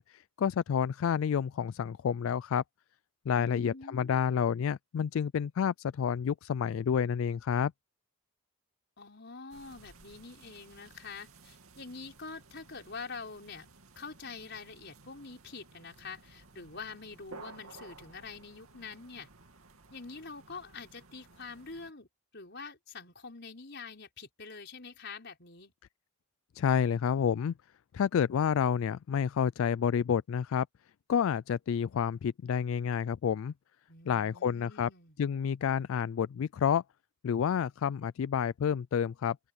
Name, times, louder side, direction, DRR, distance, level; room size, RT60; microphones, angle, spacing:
voice 1, 0.0-2.6 3.3-7.7 26.6-27.5 27.9-30.7 31.1-33.5 34.1-34.9 35.2-36.8 37.2-39.4, left 7 dB, 70° left, 0.3 m, -29 dB
voice 2, 3.4-4.2 9.0-13.7 14.0-19.3 19.9-22.1 22.3-25.7 33.9-35.2, left 4 dB, 50° left, 5.4 m, -45 dB
sound 1, 9.5-21.9, right 3 dB, 80° right, 2.5 m, -55 dB
open air
head